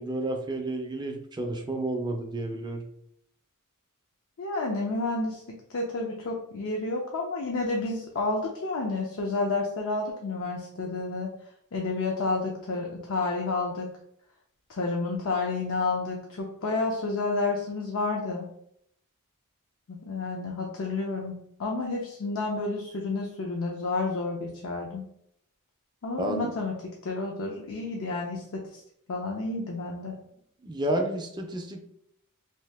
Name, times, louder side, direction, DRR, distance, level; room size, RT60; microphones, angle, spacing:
voice 1, 0.0-2.8 26.2-26.5 30.6-31.8, right 1 dB, 20° right, 4 dB, 0.4 m, -31 dB
voice 2, 4.4-11.3 11.7-13.9 14.7-18.5 19.9-25.0 26.0-28.8 29.1-30.1, left 3 dB, 65° left, 0 dB, 0.5 m, -30 dB
2.8 x 2.7 x 3.3 m, 0.73 s
head